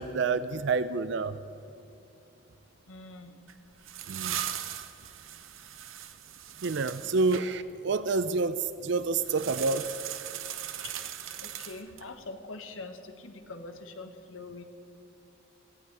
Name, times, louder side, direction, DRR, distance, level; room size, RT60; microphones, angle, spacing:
voice 1, 0.0-1.4 4.1-4.4 6.6-9.9, right 4 dB, 60° right, 13 dB, 0.5 m, -28 dB
voice 2, 2.9-3.3 10.8-10.9 11.4-14.6, left 3 dB, 80° left, 7 dB, 1.3 m, -43 dB
sound 1, 3.5-7.5 9.2-12.1, right 10 dB, 80° right, 0.8 m, -39 dB
17.5 x 15.0 x 4.8 m, 2.8 s
head